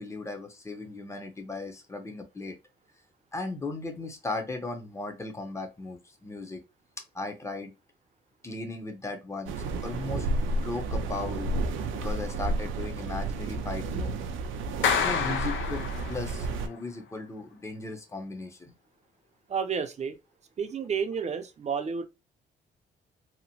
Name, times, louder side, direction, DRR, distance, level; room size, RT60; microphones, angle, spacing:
voice 1, 0.0-2.5 3.3-6.6 7.1-7.7 8.4-9.5 9.8-10.3 10.5-11.5 11.9-14.2 15.0-18.7, left 3 dB, 15° left, 0.7 m, -37 dB
sound 1, 9.5-16.7, right 2 dB, 85° right, 0.5 m, -31 dB
Clapping, 14.8-16.5, left 7 dB, 75° left, 0.6 m, -28 dB
voice 2, 19.5-20.2 20.6-22.0, right 6 dB, 35° right, 0.5 m, -30 dB
2.9 x 2.1 x 2.8 m
cardioid pair, 90°, 20 cm